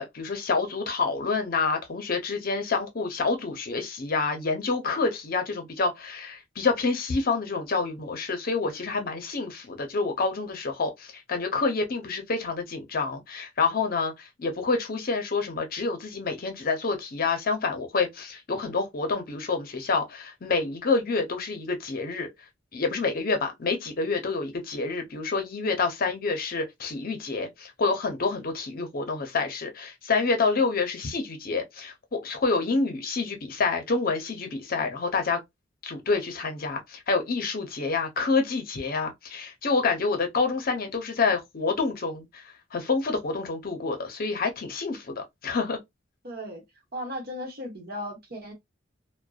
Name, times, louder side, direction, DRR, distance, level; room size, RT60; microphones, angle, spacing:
voice 1, 0.0-22.3 22.7-35.4 35.8-42.4 42.7-45.8, left 4 dB, 50° left, 0.6 m, -28 dB
voice 2, 46.2-46.6 46.9-48.5, equal, 55° right, 1.0 m, -36 dB
2.5 x 2.1 x 2.3 m
head